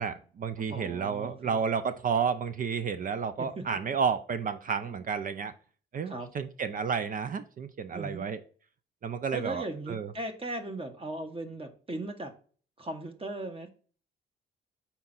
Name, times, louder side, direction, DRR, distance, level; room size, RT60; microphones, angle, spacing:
voice 1, 0.0-5.5 5.9-8.4 9.0-10.1, right 6 dB, 45° right, 11 dB, 0.5 m, -31 dB
voice 2, 0.6-1.6 3.4-3.8 4.8-5.0 6.0-6.3 7.9-8.3 9.3-12.3 12.8-13.7, right 2 dB, 30° right, 5 dB, 1.1 m, -38 dB
5.6 x 4.4 x 3.9 m, 0.42 s
cardioid pair, 90°, 20 cm